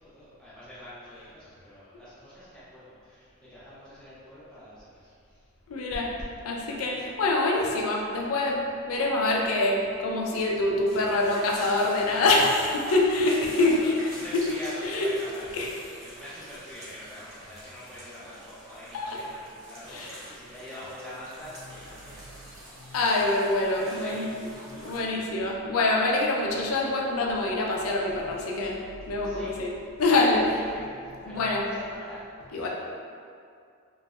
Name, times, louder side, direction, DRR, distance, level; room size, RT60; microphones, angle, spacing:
voice 1, 0.0-5.1 13.2-13.9 14.2-23.3 23.8-24.6 25.0-25.2 29.2-29.5 30.7-32.7, left 1 dB, 5° left, -12 dB, 0.5 m, -45 dB
voice 2, 5.7-6.1 6.4-14.4 14.8-15.1 15.5-15.7 18.9-19.2 19.9-20.2 22.8-24.3 24.7-28.8 29.1-30.6 31.2-31.6 32.5-32.7, left 2 dB, 80° left, -1 dB, 0.4 m, -25 dB
sound 1, 10.9-25.0, right 1 dB, 65° right, 0.8 m, -46 dB
3.0 x 2.7 x 2.4 m, 2.3 s
head